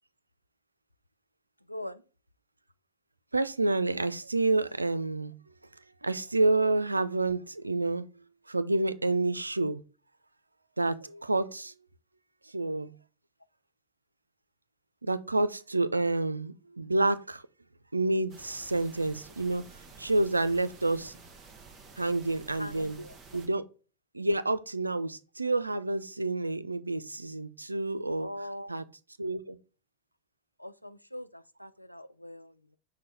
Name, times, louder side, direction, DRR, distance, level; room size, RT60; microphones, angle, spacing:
voice 1, 1.7-2.0 22.6-23.2 28.2-28.8 30.6-32.8, left 1 dB, 90° left, 0.3 m, -42 dB
voice 2, 3.3-5.3 6.0-8.0 8.5-9.8 10.8-11.7 12.5-12.9 15.0-17.4 17.9-19.6 20.0-21.1 22.0-23.0 23.3-23.6 24.1-28.3 28.7-28.8 29.2-29.6, right 2 dB, 80° right, 0.3 m, -28 dB
sound 1, 18.3-23.5, right 4 dB, 25° right, 0.9 m, -51 dB
6.0 x 2.1 x 4.2 m
figure-of-eight pair, 90°, 0 cm